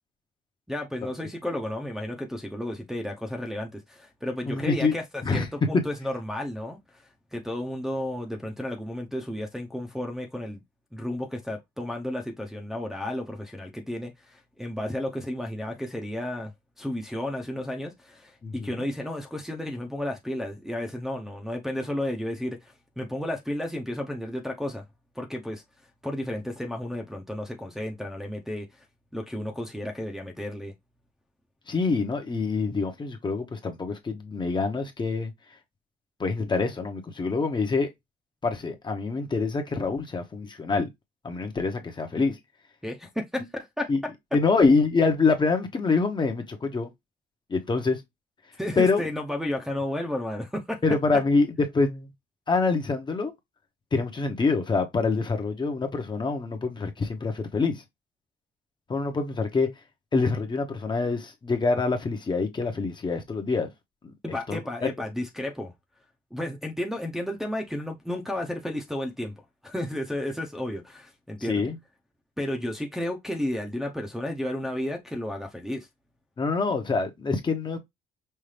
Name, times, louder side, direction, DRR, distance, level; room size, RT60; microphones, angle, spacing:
voice 1, 0.7-6.8 7.3-10.6 10.9-16.5 16.8-24.8 25.1-25.6 26.0-28.7 29.1-30.7 42.8-44.1 48.6-50.8 64.2-65.7 66.3-71.6 72.4-75.9, left 1 dB, ahead, 0.8 m, -32 dB
voice 2, 4.5-4.9 5.2-5.5 18.4-18.8 31.7-35.3 36.2-37.9 38.4-40.9 41.2-42.4 43.9-44.0 44.3-46.9 47.5-48.0 48.8-49.0 50.8-52.1 52.5-53.3 53.9-57.8 58.9-59.7 60.1-63.7 64.0-64.6 71.4-71.8 76.4-77.8, left 4 dB, 25° left, 1.0 m, -25 dB
5.6 x 2.6 x 3.3 m
cardioid pair, 130°, 17 cm